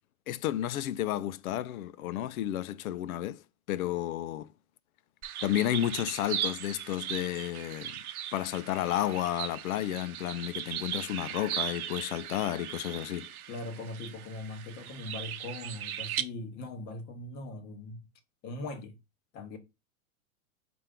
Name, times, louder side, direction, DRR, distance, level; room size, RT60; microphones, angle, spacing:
voice 1, 0.3-3.4 3.7-4.5 5.4-8.0 8.3-13.3, left 12 dB, 75° left, 0.5 m, -32 dB
sound 1, 5.2-16.2, right 11 dB, 80° right, 0.7 m, -38 dB
voice 2, 13.5-18.1 18.4-19.0 19.3-19.6, left 2 dB, 25° left, 0.8 m, -40 dB
4.3 x 2.6 x 3.4 m
hypercardioid pair, 140°, 43 cm